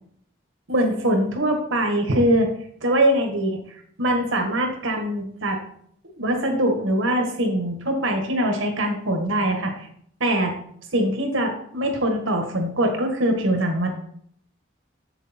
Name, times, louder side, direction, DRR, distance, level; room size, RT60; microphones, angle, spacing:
voice 1, 0.7-2.5 2.8-3.6 4.0-5.6 6.2-9.9 10.2-10.5 10.9-13.9, right 1 dB, 85° right, 3 dB, 1.7 m, -22 dB
7.4 x 6.7 x 4.4 m, 0.66 s
head